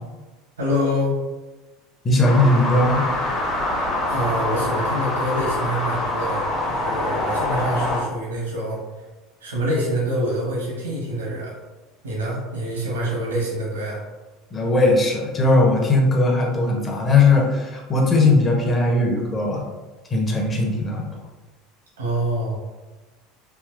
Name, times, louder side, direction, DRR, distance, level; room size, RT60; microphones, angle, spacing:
voice 1, 0.6-1.2 4.1-8.8 9.4-11.5 12.0-14.0 22.0-22.6, equal, 85° right, -4 dB, 1.1 m, -26 dB
voice 2, 2.0-3.1 14.5-19.6 20.1-21.1, left 2 dB, 30° left, 0 dB, 0.8 m, -18 dB
sound 1, 2.2-8.0, left 2 dB, 45° left, 1.2 m, -25 dB
3.5 x 2.7 x 2.4 m, 1.2 s
hypercardioid pair, 75°, 0 cm